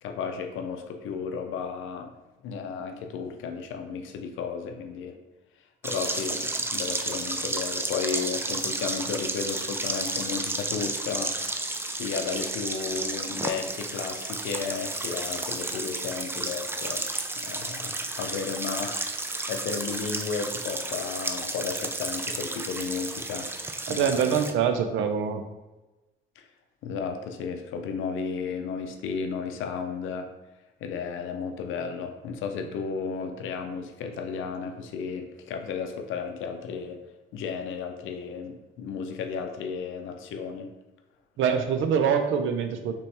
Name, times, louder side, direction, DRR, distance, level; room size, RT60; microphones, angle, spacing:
voice 1, 0.0-2.1 2.4-5.2 5.8-11.4 11.9-17.1 17.4-19.0 19.5-23.5 23.9-24.4 26.4-26.5 26.8-30.3 30.8-37.0 37.3-40.7, left 5 dB, 85° left, 6 dB, 0.6 m, -33 dB
sound 1, 5.8-24.5, right 2 dB, 10° right, 0.4 m, -32 dB
voice 2, 23.9-25.4 41.4-42.9, right 7 dB, 80° right, 7 dB, 0.5 m, -24 dB
4.2 x 3.1 x 3.3 m, 1.1 s
cardioid pair, 90°, 20 cm